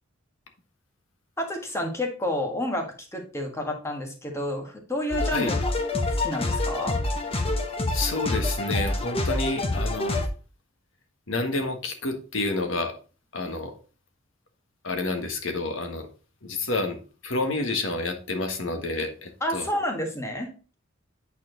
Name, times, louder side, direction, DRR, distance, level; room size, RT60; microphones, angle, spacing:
voice 1, 1.4-5.7 6.2-7.0 19.4-20.7, left 1 dB, 15° left, 2 dB, 1.5 m, -30 dB
sound 1, 5.1-10.3, left 2 dB, 30° left, 1.0 m, -27 dB
voice 2, 7.9-10.2 11.3-13.0 13.3-13.7 14.8-16.1 16.4-19.7, left 2 dB, 75° left, 6 dB, 1.4 m, -29 dB
8.7 x 4.4 x 3.8 m, 0.35 s
head